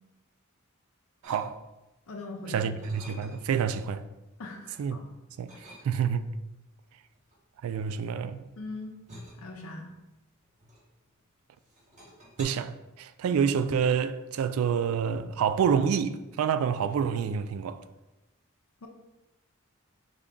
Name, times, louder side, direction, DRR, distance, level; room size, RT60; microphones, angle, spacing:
sound 1, 1.2-1.9 2.3-3.7 4.1-4.9 5.5-6.3 7.1-11.3 11.6-12.4, equal, 35° right, 1.2 m, -51 dB
voice 1, 1.2-1.6 2.5-4.1 4.8-5.0 5.4-6.3 7.6-8.4 12.4-17.8, right 7 dB, 90° right, 0.3 m, -28 dB
voice 2, 2.1-2.7 4.4-5.0 8.6-8.9 9.4-9.9 18.8-18.9, left 2 dB, 90° left, 0.5 m, -40 dB
5.0 x 2.3 x 3.6 m
head